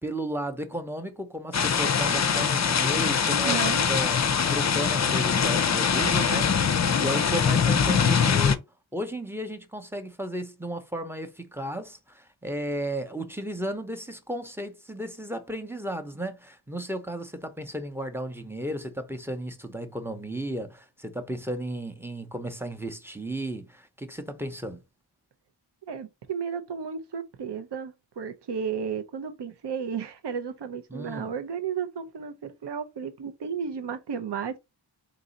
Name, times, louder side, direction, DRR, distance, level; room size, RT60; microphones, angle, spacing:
voice 1, 0.0-4.2 4.5-8.6 8.9-24.8 30.9-31.3, right 1 dB, 5° right, 0.7 m, -34 dB
sound 1, 1.5-8.6, left 6 dB, 40° left, 0.5 m, -23 dB
voice 2, 3.3-3.9 25.9-34.6, right 6 dB, 60° right, 0.7 m, -33 dB
3.9 x 2.7 x 3.9 m
wide cardioid pair, 85°, 46 cm